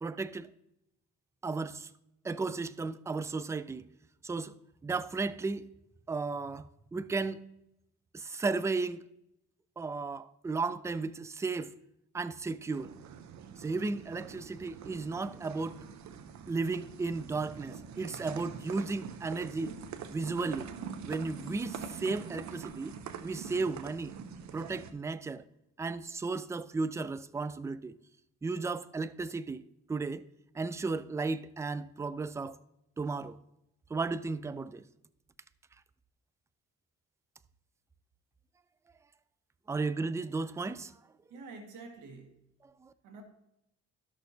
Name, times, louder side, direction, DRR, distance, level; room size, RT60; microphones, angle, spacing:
voice 1, 0.0-0.5 1.4-1.9 2.2-3.8 4.2-4.6 4.8-5.7 6.1-6.6 6.9-7.4 8.1-9.0 9.8-11.7 12.1-12.9 13.6-15.8 16.5-19.7 20.1-20.7 21.0-23.0 23.2-24.1 24.5-25.4 25.8-27.9 28.4-29.6 29.9-30.2 30.5-32.6 33.0-33.4 33.9-34.8 39.7-40.9 42.8-42.9, right 3 dB, 10° right, 0.3 m, -34 dB
sound 1, 12.7-24.9, right 7 dB, 65° right, 0.7 m, -45 dB
voice 2, 41.3-42.5 43.0-43.2, right 3 dB, 85° right, 1.7 m, -48 dB
12.5 x 6.4 x 2.7 m
cardioid pair, 90°, 30 cm